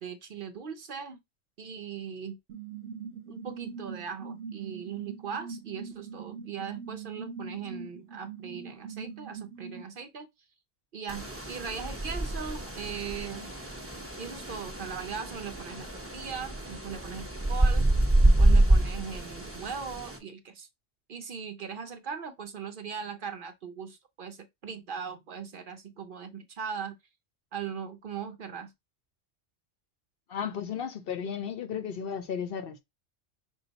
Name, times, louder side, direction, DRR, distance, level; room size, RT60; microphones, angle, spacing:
voice 1, 0.0-1.2 1.6-2.4 3.3-10.3 10.9-13.5 14.2-17.9 18.3-20.7 21.1-27.0 27.5-28.7, right 6 dB, 55° right, 0.7 m, -39 dB
sound 1, 2.5-9.8, right 6 dB, 75° right, 1.0 m, -42 dB
sound 2, 11.1-20.2, right 1 dB, 15° right, 0.8 m, -27 dB
voice 2, 30.3-32.8, left 7 dB, 60° left, 0.7 m, -34 dB
5.6 x 2.2 x 3.9 m
omnidirectional pair, 1.2 m